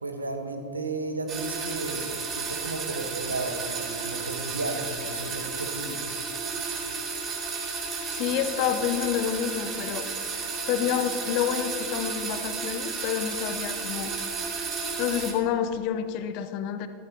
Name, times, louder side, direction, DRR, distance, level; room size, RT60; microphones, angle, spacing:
voice 1, 0.0-6.0, right 2 dB, 80° right, 5 dB, 1.3 m, -34 dB
sound 1, 1.3-15.3, right 4 dB, 30° right, 2.6 m, -33 dB
voice 2, 8.1-10.1 10.6-14.1 15.0-16.9, left 9 dB, 45° left, 10 dB, 0.7 m, -28 dB
15.0 x 13.5 x 2.9 m, 2.6 s
figure-of-eight pair, 90°, 0 cm